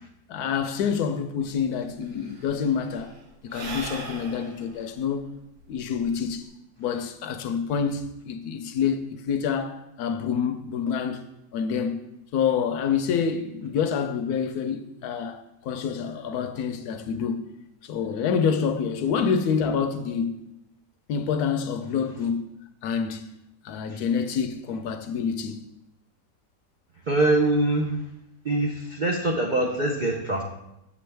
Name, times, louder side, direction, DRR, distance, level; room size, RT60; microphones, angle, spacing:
voice 1, 0.3-3.1 3.4-5.3 5.7-6.5 6.8-11.2 11.5-12.0 12.3-17.5 17.8-20.4 21.1-22.5 22.8-23.3 23.6-25.6, left 6 dB, 70° left, 1.0 m, -27 dB
Sigh / Breathing, 1.4-1.5 1.7-6.5, right 3 dB, 65° right, 1.5 m, -40 dB
voice 2, 27.1-28.0 28.4-30.4, right 2 dB, 85° right, 0.4 m, -23 dB
7.0 x 6.1 x 3.3 m
omnidirectional pair, 1.8 m